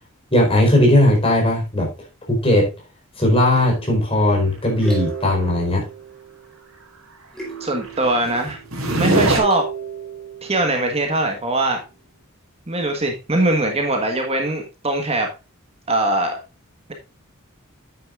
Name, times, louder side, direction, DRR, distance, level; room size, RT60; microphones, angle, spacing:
voice 1, 0.3-1.9 2.3-2.7 3.2-5.8, left 1 dB, 25° left, 0 dB, 4.4 m, -17 dB
sound 1, 3.5-6.8 7.3-9.0 9.4-11.8, right 5 dB, ahead, 3.3 m, -35 dB
voice 2, 7.6-8.6 8.9-9.7 10.4-11.8 12.7-15.3 15.9-16.4, right 2 dB, 30° right, 3 dB, 1.4 m, -21 dB
sound 2, 8.0-9.4, right 1 dB, 70° right, 3.0 m, -20 dB
9.5 x 9.3 x 2.5 m, 0.28 s
head